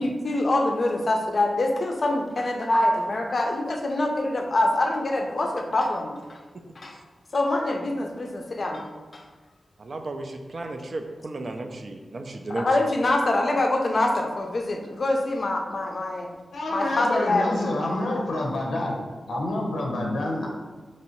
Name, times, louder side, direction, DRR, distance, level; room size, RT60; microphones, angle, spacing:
voice 1, 0.0-6.4 6.8-7.0 7.3-8.9 9.1-9.2 12.5-16.3 16.7-17.6, left 2 dB, 40° left, 2 dB, 0.4 m, -25 dB
voice 2, 9.8-12.7, right 2 dB, 45° right, 5 dB, 0.3 m, -34 dB
voice 3, 16.5-19.0 19.3-20.5, left 1 dB, 85° left, -1 dB, 0.6 m, -27 dB
3.0 x 2.7 x 4.3 m, 1.3 s
wide cardioid pair, 160°, 0 cm